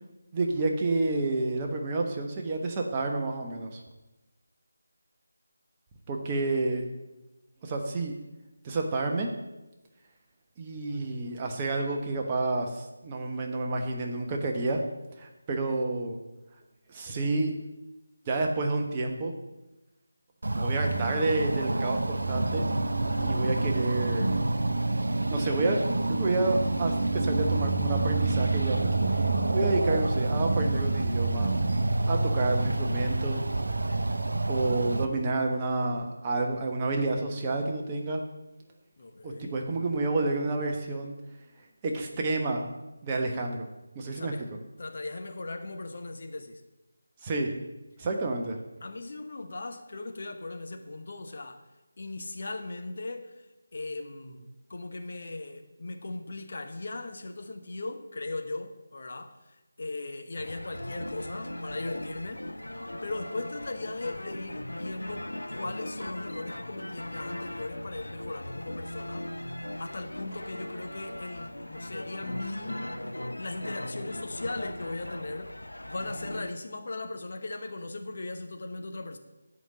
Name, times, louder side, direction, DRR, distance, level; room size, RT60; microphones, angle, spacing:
voice 1, 0.3-3.8 6.1-6.8 7.6-8.1 8.6-9.3 10.6-14.8 15.2-16.2 16.9-17.5 18.3-19.3 20.5-22.6 23.2-24.3 25.3-25.8 26.1-31.6 32.0-33.4 34.5-38.2 39.2-41.1 41.8-42.7 43.0-43.7 43.9-44.5 47.2-47.5 48.0-48.6, right 2 dB, 20° right, 1 dB, 1.1 m, -29 dB
sound 1, 20.4-35.1, right 2 dB, 65° right, 0.7 m, -27 dB
voice 2, 23.0-23.4 39.0-39.6 44.1-44.4 44.8-46.6 48.8-51.6 52.0-53.3 53.7-59.3 59.8-62.4 63.0-69.3 69.8-72.9 73.4-75.5 75.9-79.2, left 2 dB, 45° left, 6 dB, 1.1 m, -38 dB
sound 2, 60.4-76.5, left 1 dB, 80° left, 0.6 m, -39 dB
8.3 x 5.3 x 7.5 m, 1.0 s
figure-of-eight pair, 160°, 0 cm